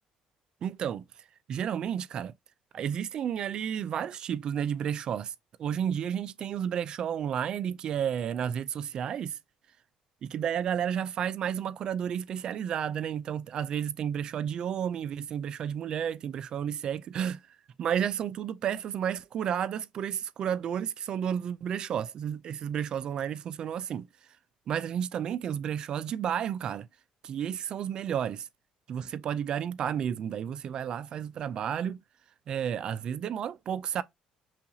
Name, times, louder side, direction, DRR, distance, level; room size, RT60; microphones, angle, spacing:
voice 1, 0.6-1.0 1.5-2.3 2.7-9.4 10.2-24.1 24.7-26.9 27.2-28.5 28.9-32.0 32.5-34.0, right 9 dB, 40° right, 0.3 m, -32 dB
5.6 x 2.4 x 2.7 m
cardioid pair, 155°, 2 cm